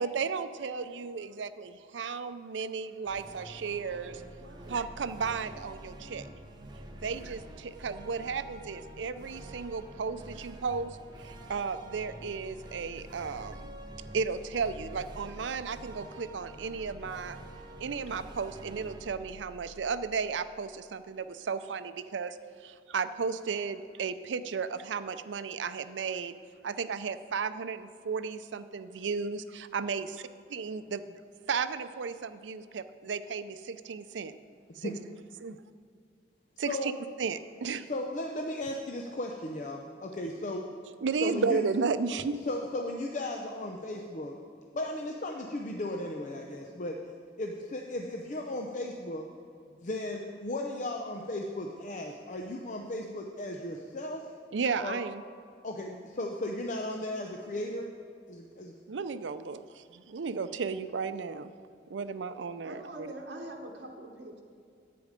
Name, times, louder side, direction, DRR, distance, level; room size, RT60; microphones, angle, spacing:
voice 1, 0.0-4.2 4.7-6.3 6.9-11.0 11.2-13.8 14.1-17.4 17.8-26.3 26.6-30.2 30.5-31.2 31.5-34.3 34.8-34.9 35.4-35.6 36.6-36.9 37.2-37.9 41.0-42.5 54.5-55.2 58.9-61.5 61.9-63.1, right 5 dB, 90° right, 12 dB, 0.5 m, -34 dB
sound 1, 3.0-20.5, right 1 dB, 25° right, 0.8 m, -47 dB
voice 2, 4.3-4.8 62.6-64.4, right 1 dB, 70° right, 1 dB, 1.1 m, -44 dB
voice 3, 37.9-40.6 41.2-41.6 42.5-44.3 44.7-47.0 47.4-49.3 49.8-54.3 54.8-55.0 55.6-57.9 58.3-58.7, left 1 dB, 45° left, 2 dB, 0.6 m, -36 dB
10.5 x 8.6 x 5.1 m, 2.3 s
head